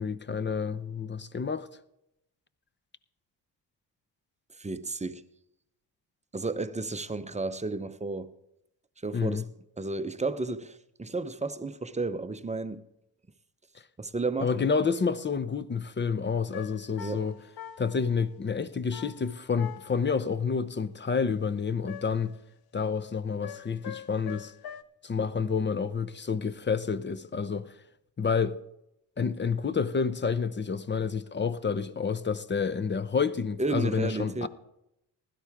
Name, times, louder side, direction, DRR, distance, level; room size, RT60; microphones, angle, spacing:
voice 1, 0.0-1.7 9.1-9.4 14.4-17.4 17.8-22.3 22.7-24.5 25.0-27.7 28.2-28.6 29.2-34.5, left 5 dB, 25° left, 0.7 m, -29 dB
voice 2, 4.5-5.2 6.3-8.3 9.0-9.5 9.8-12.8 14.0-14.6 17.0-17.2 33.6-34.5, right 3 dB, 15° right, 0.7 m, -32 dB
sound 1, 16.5-18.1 18.9-20.2 21.9-22.4 23.4-24.8, left 10 dB, 60° left, 0.8 m, -44 dB
16.0 x 12.0 x 3.6 m
supercardioid pair, 65°, 42 cm